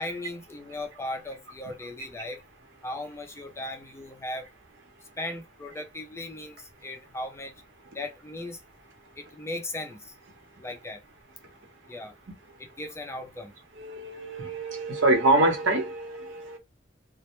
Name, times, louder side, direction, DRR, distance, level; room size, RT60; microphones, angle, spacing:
voice 1, 0.0-2.4 2.8-4.5 5.2-7.5 7.9-8.6 9.2-10.1 10.6-11.0 11.9-12.1 12.6-13.5, left 1 dB, 15° left, 0.4 m, -37 dB
voice 2, 13.8-16.6, right 2 dB, 80° right, 0.8 m, -25 dB
2.1 x 2.0 x 2.9 m
head